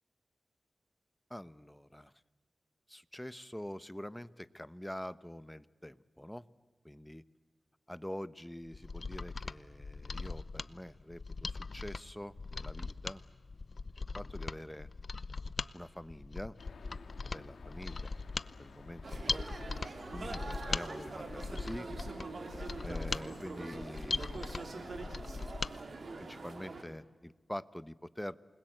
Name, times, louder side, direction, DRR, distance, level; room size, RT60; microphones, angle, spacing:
voice 1, 1.3-2.1 2.9-6.4 6.8-7.2 7.9-13.2 14.1-14.9 15.7-16.6 17.3-18.2 18.6-19.5 20.1-21.9 22.8-24.6 25.0-25.4 26.3-28.4, left 1 dB, 10° left, 16 dB, 0.9 m, -45 dB
Mechanisms, 8.7-25.7 26.1-26.2, left 4 dB, 55° left, 0.7 m, -40 dB
sound 1, 16.6-25.2, left 4 dB, 90° left, 2.4 m, -54 dB
sound 2, 19.0-26.8, right 3 dB, 65° right, 3.3 m, -44 dB
28.5 x 21.0 x 7.9 m, 1.3 s
cardioid pair, 65°, 0 cm